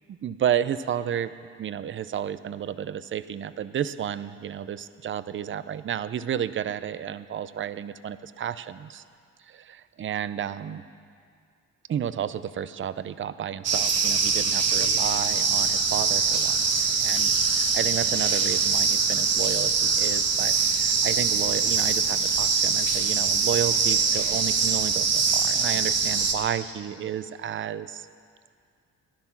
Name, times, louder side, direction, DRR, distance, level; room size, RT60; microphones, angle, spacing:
voice 1, 0.2-1.3 1.6-9.0 9.5-10.8 11.9-28.1, right 9 dB, 40° right, 15 dB, 0.5 m, -32 dB
sound 1, 13.6-26.3, right 5 dB, 55° right, 1.3 m, -23 dB
15.0 x 11.0 x 5.9 m, 2.2 s
cardioid pair, 90°, 30 cm